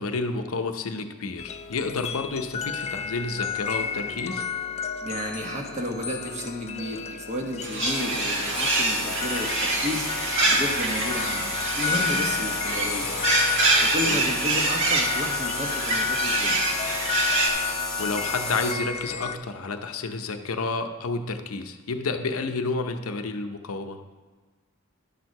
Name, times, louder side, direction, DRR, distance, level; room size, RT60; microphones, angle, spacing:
voice 1, 0.0-4.4 14.0-14.2 18.0-24.0, left 3 dB, 75° left, 6 dB, 0.7 m, -30 dB
sound 1, 1.4-19.4, left 7 dB, 30° left, 0.3 m, -32 dB
voice 2, 5.0-10.1 10.4-11.5 11.7-13.1 13.8-16.6, left 1 dB, 35° right, 2 dB, 1.2 m, -32 dB
sound 2, 7.6-17.5, right 3 dB, 60° right, 1.3 m, -26 dB
sound 3, 7.9-18.7, left 1 dB, 5° left, 1.2 m, -33 dB
11.0 x 4.6 x 6.4 m, 1.4 s
head